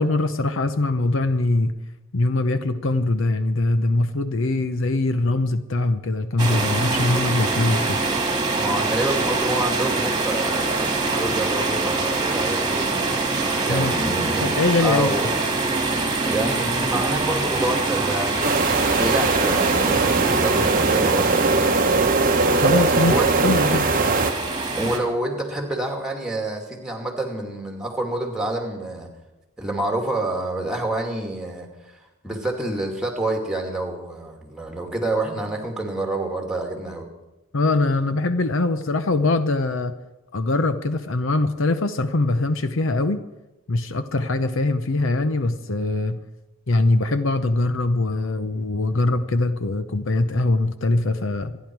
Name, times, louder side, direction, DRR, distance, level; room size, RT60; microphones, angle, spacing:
voice 1, 0.0-1.8 2.1-8.0 13.7-13.9 14.4-15.2 22.6-23.1 23.4-23.9 37.5-40.0 40.3-43.2 43.7-46.2 46.7-51.6, left 2 dB, 60° left, 11 dB, 0.7 m, -22 dB
sound 1, 6.4-25.0, right 3 dB, 20° right, 2.1 m, -24 dB
voice 2, 8.6-12.9 13.6-14.5 14.8-15.3 16.2-18.5 18.9-21.5 23.0-23.5 24.8-29.1 29.6-31.7 32.2-37.0, right 2 dB, 5° right, 2 dB, 2.4 m, -27 dB
sound 2, 18.4-24.3, right 3 dB, 40° right, 0.9 m, -20 dB
27.0 x 10.5 x 4.7 m, 1.0 s
head